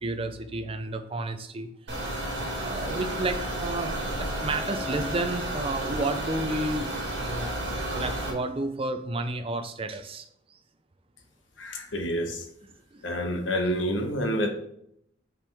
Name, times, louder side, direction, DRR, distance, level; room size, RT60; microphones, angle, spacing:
voice 1, 0.0-2.0 2.6-6.9 7.2-7.5 7.9-10.3 12.6-13.0 13.6-13.7, right 2 dB, 30° right, 9 dB, 0.5 m, -31 dB
sound 1, 1.9-8.3, right 1 dB, 65° right, 2.1 m, -32 dB
voice 2, 11.6-12.5 13.0-14.5, equal, 85° left, 4 dB, 1.1 m, -28 dB
5.5 x 5.2 x 3.5 m, 0.73 s
head